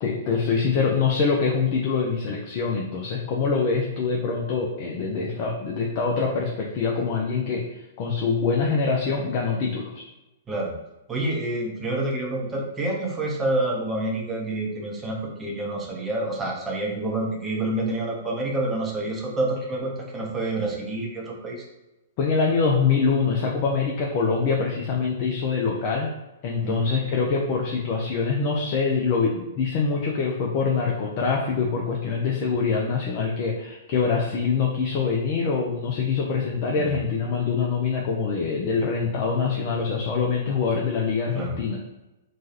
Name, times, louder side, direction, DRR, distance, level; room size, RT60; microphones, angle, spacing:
voice 1, 0.0-7.6 8.0-10.1 22.2-26.1 26.4-41.8, left 5 dB, 40° left, -1 dB, 0.4 m, -24 dB
voice 2, 11.1-21.6 26.6-26.8 36.8-37.0 41.3-41.6, right 2 dB, 15° right, -1 dB, 0.6 m, -28 dB
3.0 x 2.3 x 2.8 m, 1.0 s
figure-of-eight pair, 110°, 0 cm